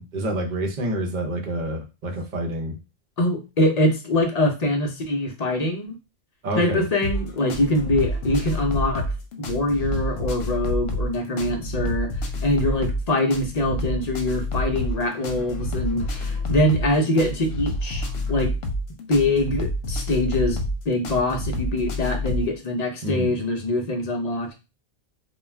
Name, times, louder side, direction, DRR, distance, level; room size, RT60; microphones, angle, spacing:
voice 1, 0.0-2.8 6.4-6.8 23.0-23.3, right 1 dB, 50° right, 2 dB, 0.8 m, -28 dB
voice 2, 3.2-6.0 6.5-9.0 9.4-12.1 12.4-18.5 19.1-24.6, left 1 dB, 45° left, 3 dB, 0.6 m, -24 dB
sound 1, 7.0-22.5, left 1 dB, 80° left, 0.9 m, -28 dB
2.3 x 2.2 x 3.2 m, 0.29 s
omnidirectional pair, 1.1 m